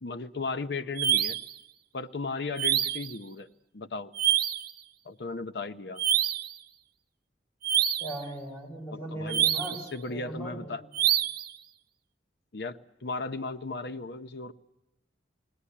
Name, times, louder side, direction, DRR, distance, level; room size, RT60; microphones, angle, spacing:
voice 1, 0.0-1.4 1.9-3.5 3.7-4.1 5.0-6.0 9.1-9.5 9.9-10.8 12.5-14.5, left 3 dB, 60° left, 10 dB, 0.7 m, -35 dB
sound 1, 1.0-1.5 2.6-3.1 4.1-4.7 6.0-6.5 7.6-8.2 9.3-9.9 10.9-11.5, right 11 dB, 55° right, 0.7 m, -26 dB
voice 2, 8.0-9.8 10.1-10.8, right 1 dB, 15° left, -1 dB, 6.0 m, -38 dB
20.0 x 17.5 x 10.0 m, 0.98 s
head